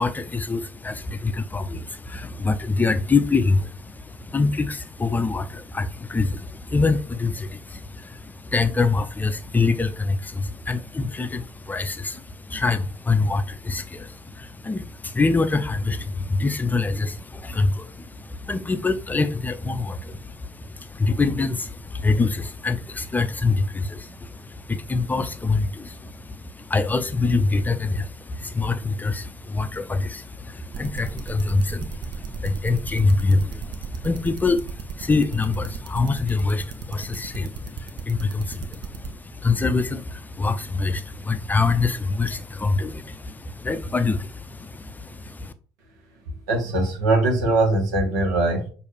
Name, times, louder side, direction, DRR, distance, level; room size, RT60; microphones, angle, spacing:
voice 1, 0.0-45.5, left 3 dB, 20° left, 0.5 m, -25 dB
sound 1, 30.7-39.1, right 8 dB, 55° right, 0.7 m, -34 dB
voice 2, 46.5-48.7, right 2 dB, 75° right, 1.2 m, -21 dB
6.3 x 2.6 x 3.2 m
figure-of-eight pair, 55°, 10 cm